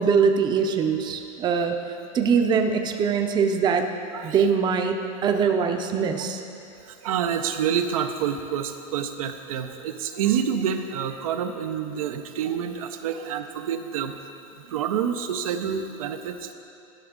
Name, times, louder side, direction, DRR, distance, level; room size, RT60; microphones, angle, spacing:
voice 1, 0.0-1.8 2.1-3.9 4.2-6.4, right 6 dB, 25° right, 5 dB, 0.5 m, -22 dB
voice 2, 4.1-4.4 6.8-14.2 14.7-16.5, right 8 dB, 85° right, 7 dB, 0.5 m, -28 dB
11.0 x 6.1 x 3.7 m, 2.7 s
supercardioid pair, 130°, 17 cm